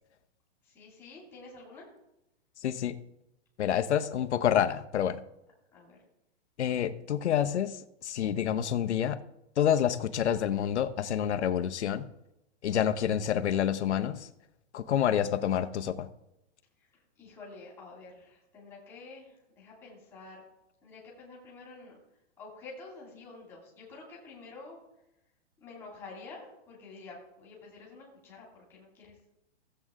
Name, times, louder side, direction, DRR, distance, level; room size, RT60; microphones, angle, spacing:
voice 1, 0.6-1.9 5.7-6.0 17.2-20.4 20.8-22.0 22.4-24.8 25.6-29.2, left 3 dB, 5° left, -3 dB, 2.3 m, -49 dB
voice 2, 2.6-3.0 3.6-5.2 6.6-9.2 9.6-12.1 12.6-14.3 14.7-16.1, left 9 dB, 75° left, 11 dB, 0.8 m, -28 dB
15.0 x 7.8 x 3.6 m, 0.89 s
hypercardioid pair, 180°, 34 cm